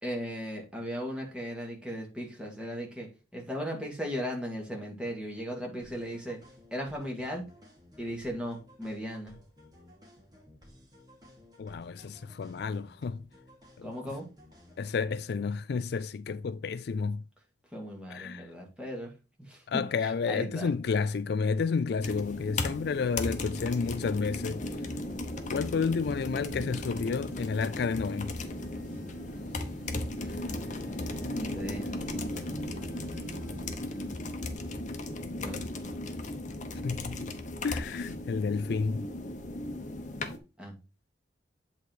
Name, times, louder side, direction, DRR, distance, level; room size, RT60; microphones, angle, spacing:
voice 1, 0.0-6.4 6.7-7.5 8.0-9.4 13.8-14.3 17.7-19.1 19.5-19.8 20.3-20.7 30.2-30.4 31.1-31.9 35.4-35.6 40.6-40.7, equal, 5° right, 2.2 m, -37 dB
sound 1, 5.8-15.4, left 1 dB, 20° right, 2.6 m, -56 dB
voice 2, 11.6-13.3 13.8-14.1 14.8-17.2 18.1-18.5 19.7-24.6 25.5-28.3 36.8-37.3 37.6-39.1, left 5 dB, 60° left, 0.3 m, -31 dB
sound 2, 22.0-40.4, left 2 dB, 45° left, 1.0 m, -36 dB
sound 3, 24.5-34.1, right 2 dB, 45° right, 1.8 m, -48 dB
8.3 x 4.0 x 4.5 m
head